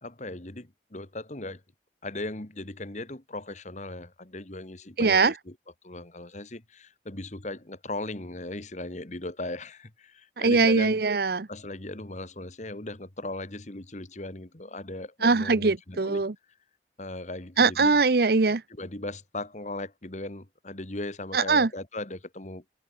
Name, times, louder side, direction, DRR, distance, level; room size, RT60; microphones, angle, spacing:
voice 1, 0.0-1.6 2.0-5.6 5.8-11.0 11.5-16.2 17.0-18.0 18.7-22.6, left 2 dB, 40° left, 1.8 m, -38 dB
voice 2, 5.0-5.3 10.4-11.5 15.2-16.3 17.6-18.6 21.3-21.7, right 4 dB, 55° right, 0.8 m, -22 dB
head